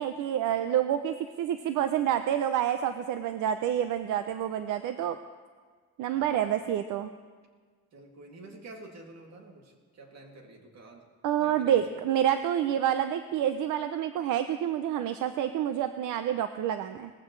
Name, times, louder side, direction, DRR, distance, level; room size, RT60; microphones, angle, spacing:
voice 1, 0.0-5.2 6.0-7.1 11.2-17.1, right 10 dB, 85° right, 9 dB, 0.6 m, -28 dB
voice 2, 6.1-6.6 7.9-11.0 11.4-11.8, right 2 dB, 60° right, 1 dB, 2.6 m, -49 dB
19.0 x 15.5 x 3.2 m, 1.5 s
cardioid pair, 90°, 30 cm